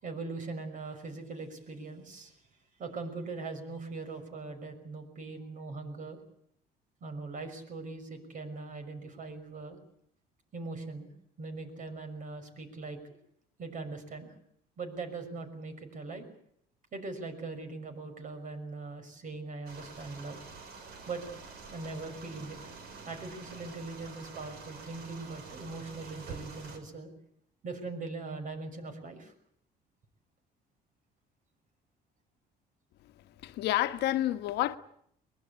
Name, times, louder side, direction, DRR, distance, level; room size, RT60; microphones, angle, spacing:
voice 1, 0.0-2.3 2.8-6.2 7.0-9.8 10.5-11.1 11.4-13.0 13.6-14.3 14.8-16.3 16.9-20.4 21.1-21.2 21.7-22.6 23.1-27.1 27.6-29.3, right 3 dB, 50° right, 6.0 m, -41 dB
sound 1, 19.7-26.8, right 4 dB, 75° right, 5.3 m, -47 dB
voice 2, 33.4-34.8, left 14 dB, 80° left, 1.3 m, -29 dB
23.5 x 21.0 x 8.4 m
cardioid pair, 110°, 17 cm